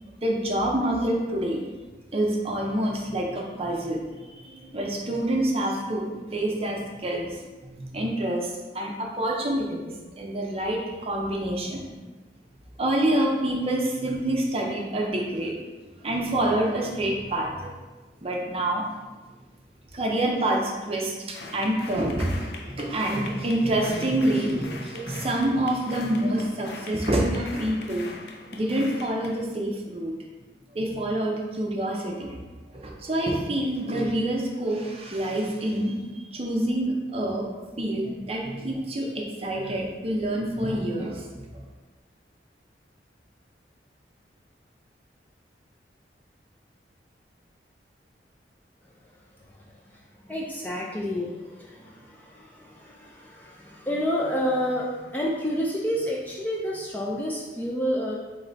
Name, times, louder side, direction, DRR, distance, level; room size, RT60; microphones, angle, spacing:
voice 1, 0.2-1.6 2.1-8.5 8.7-9.8 10.2-11.9 12.8-15.5 16.0-17.7 18.2-18.8 19.9-22.3 22.6-28.1 28.5-30.1 30.7-32.4 32.7-37.5 37.8-41.5, right 1 dB, 35° right, -1 dB, 0.6 m, -27 dB
sound 1, 21.3-29.4, left 3 dB, 65° left, 0.5 m, -41 dB
voice 2, 49.1-58.2, equal, 10° left, -3 dB, 0.4 m, -30 dB
3.7 x 3.2 x 3.9 m, 1.2 s
head